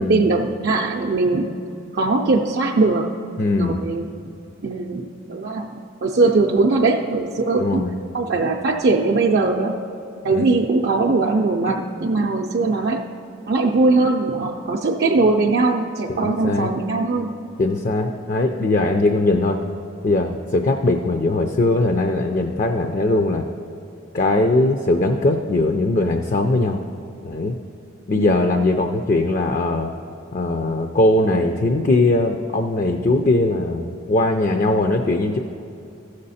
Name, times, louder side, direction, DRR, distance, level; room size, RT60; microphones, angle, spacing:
voice 1, 0.0-1.5 1.9-3.1 3.6-4.3 4.6-5.7 6.0-9.8 10.2-13.0 13.5-17.3 28.2-28.5, right 3 dB, 55° right, -1 dB, 0.5 m, -20 dB
voice 2, 3.4-3.8 7.6-8.0 10.3-10.4 16.1-16.7 17.6-19.6 20.0-23.4 24.1-26.8 27.2-27.5 28.1-29.9 30.3-35.4, left 2 dB, 40° left, 5 dB, 0.5 m, -20 dB
15.0 x 6.6 x 4.1 m, 2.7 s
head